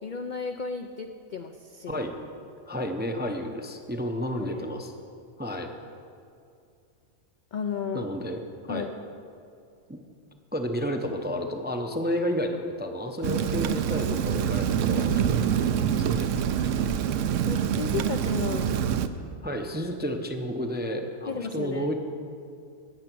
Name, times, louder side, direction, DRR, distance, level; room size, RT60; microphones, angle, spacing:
voice 1, 0.0-2.1 4.4-4.7 7.5-8.1 8.7-8.9 17.5-18.7 21.3-21.9, left 6 dB, 65° left, 6 dB, 0.4 m, -33 dB
voice 2, 2.7-4.9 5.4-5.7 7.9-8.4 8.7-8.9 10.5-16.3 19.4-21.9, equal, 15° right, 4 dB, 0.4 m, -31 dB
Rain, 13.2-19.1, right 8 dB, 70° right, 0.9 m, -26 dB
19.0 x 6.9 x 6.1 m, 2.5 s
omnidirectional pair, 1.4 m